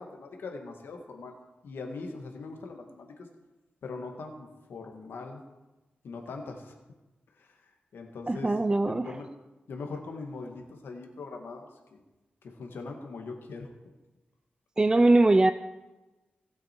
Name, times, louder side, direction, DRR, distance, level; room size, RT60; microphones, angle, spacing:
voice 1, 0.0-1.4 1.6-3.1 3.8-5.4 6.0-6.7 7.4-7.5 7.9-9.3 9.7-12.0 12.4-13.7, left 3 dB, 90° left, 3 dB, 1.6 m, -41 dB
voice 2, 8.3-9.2 14.8-15.5, right 2 dB, 20° right, 10 dB, 0.4 m, -21 dB
18.5 x 6.4 x 4.5 m, 1.1 s
wide cardioid pair, 110°, 4 cm